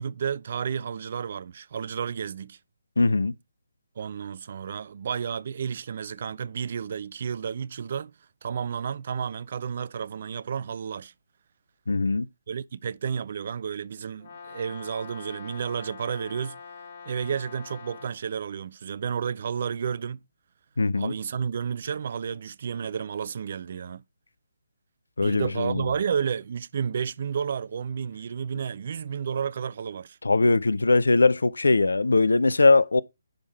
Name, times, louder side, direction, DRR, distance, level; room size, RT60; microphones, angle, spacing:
voice 1, 0.0-2.6 4.0-8.1 8.4-11.1 12.5-16.6 17.1-20.2 21.0-24.0 25.2-30.2, right 7 dB, 45° right, 0.3 m, -31 dB
voice 2, 3.0-3.3 11.9-12.3 20.8-21.1 25.2-25.8 30.2-33.0, left 3 dB, 65° left, 0.5 m, -21 dB
Brass instrument, 14.2-18.2, left 5 dB, 45° left, 2.1 m, -44 dB
10.5 x 3.6 x 4.5 m
figure-of-eight pair, 140°, 0 cm